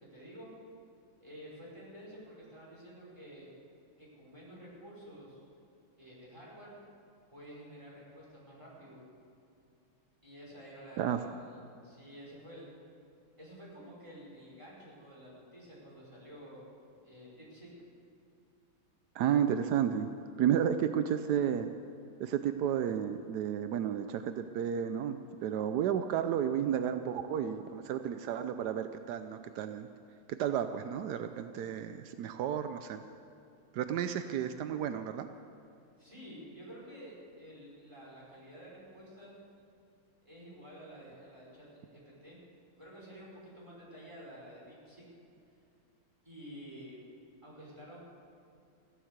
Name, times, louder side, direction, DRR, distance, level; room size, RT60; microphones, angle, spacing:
voice 1, 0.1-0.5 1.2-3.5 4.0-5.4 6.0-6.8 7.3-9.1 10.2-12.7 13.4-16.7 17.0-17.7 36.0-39.4 40.3-42.4 42.7-45.0 46.2-47.0 47.4-48.0, equal, 15° right, -6 dB, 5.1 m, -50 dB
voice 2, 19.1-20.1 20.4-21.7 22.2-29.9 30.3-33.0 33.7-35.3, right 9 dB, 80° right, 9 dB, 0.9 m, -32 dB
15.0 x 11.0 x 8.0 m, 2.5 s
omnidirectional pair, 2.3 m